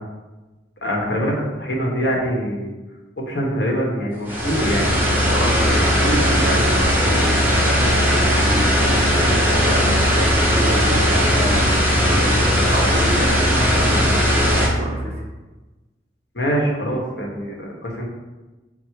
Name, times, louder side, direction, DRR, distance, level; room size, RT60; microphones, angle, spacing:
voice 1, 0.8-2.7 3.2-4.9 16.3-18.1, equal, 70° left, -1 dB, 1.0 m, -24 dB
sound 1, 4.3-14.7, equal, 10° right, 0.7 m, -18 dB
voice 2, 5.2-15.2, right 1 dB, 35° right, -3 dB, 1.0 m, -28 dB
5.9 x 2.0 x 4.4 m, 1.2 s
head